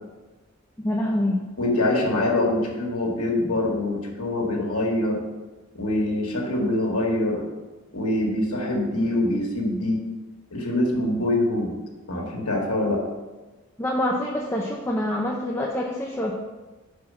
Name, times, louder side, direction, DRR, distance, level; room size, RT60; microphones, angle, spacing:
voice 1, 0.8-1.4 13.8-16.3, left 1 dB, 10° left, -2 dB, 0.5 m, -26 dB
voice 2, 1.6-5.2 5.7-7.5 7.9-10.0 10.5-11.7 12.1-13.0, left 1 dB, 90° left, -1 dB, 1.8 m, -24 dB
5.5 x 4.8 x 6.2 m, 1.2 s
head